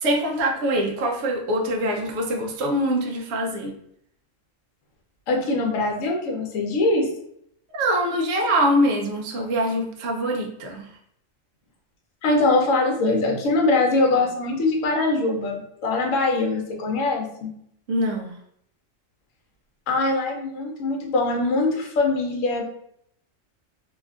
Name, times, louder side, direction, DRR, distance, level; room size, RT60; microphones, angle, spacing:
voice 1, 0.0-3.7 7.7-10.9 17.9-18.3, equal, 65° right, 1 dB, 0.7 m, -24 dB
voice 2, 5.3-7.1 12.2-17.5 19.9-22.6, left 2 dB, 75° left, 1 dB, 1.0 m, -22 dB
2.7 x 2.4 x 2.3 m, 0.70 s
omnidirectional pair, 1.4 m